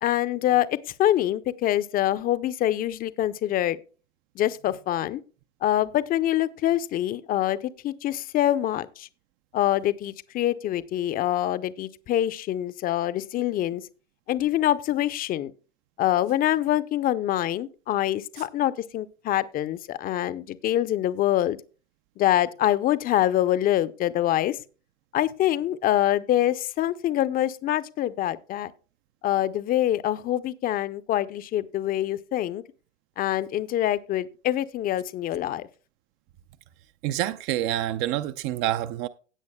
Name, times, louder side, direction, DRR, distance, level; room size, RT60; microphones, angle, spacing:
voice 1, 0.0-3.8 4.4-5.2 5.6-7.6 7.8-9.1 9.5-13.8 14.3-15.5 16.0-21.6 22.2-24.6 25.1-28.7 29.2-32.6 33.2-35.6, left 13 dB, 25° left, 0.6 m, -25 dB
voice 2, 37.0-39.1, right 13 dB, 35° right, 0.5 m, -27 dB
16.5 x 8.2 x 2.2 m
hypercardioid pair, 105°, 36 cm